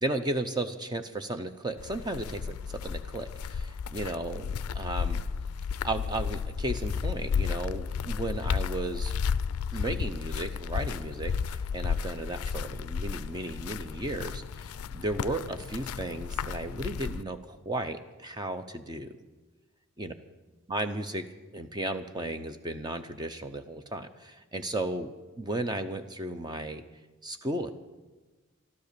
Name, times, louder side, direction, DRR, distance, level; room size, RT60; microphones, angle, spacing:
voice 1, 0.0-5.2 5.8-9.1 9.7-19.2 20.0-20.1 20.7-21.2 21.5-26.8 27.2-27.7, right 1 dB, 20° right, 8 dB, 0.6 m, -34 dB
sound 1, 1.8-17.2, left 6 dB, 80° left, 0.4 m, -33 dB
13.5 x 12.5 x 6.7 m, 1.2 s
head